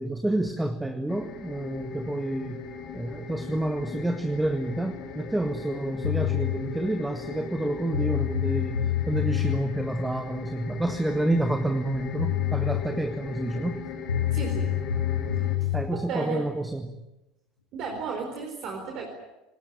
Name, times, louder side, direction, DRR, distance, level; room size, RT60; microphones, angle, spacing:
voice 1, 0.0-2.6 2.9-13.8 15.7-17.0, right 1 dB, 5° right, 8 dB, 1.7 m, -29 dB
sound 1, 1.1-15.6, left 5 dB, 45° left, 3.3 m, -39 dB
sound 2, 6.0-6.6 7.6-7.7 7.9-9.6 11.8-11.9 12.2-12.8 14.1-15.8, left 11 dB, 80° left, 2.3 m, -26 dB
voice 2, 14.3-14.7 15.9-16.4 17.7-19.1, right 5 dB, 50° right, 2 dB, 4.3 m, -33 dB
27.0 x 19.5 x 8.8 m, 0.99 s
figure-of-eight pair, 70°, 0 cm